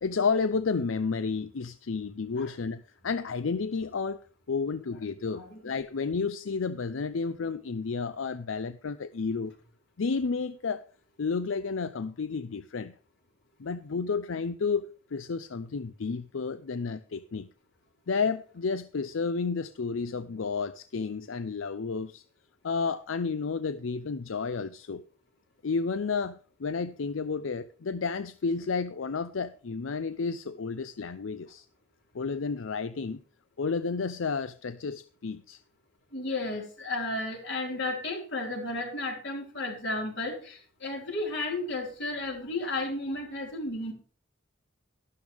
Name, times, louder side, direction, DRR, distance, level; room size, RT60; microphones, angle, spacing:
voice 1, 0.0-4.2 4.5-9.6 10.0-10.8 11.2-12.9 13.6-17.5 18.1-22.2 22.6-25.0 25.6-31.7 32.1-33.2 33.6-35.6, left 4 dB, 90° left, 0.6 m, -31 dB
voice 2, 36.1-43.9, left 2 dB, 65° left, 4.8 m, -33 dB
12.5 x 12.5 x 3.5 m
head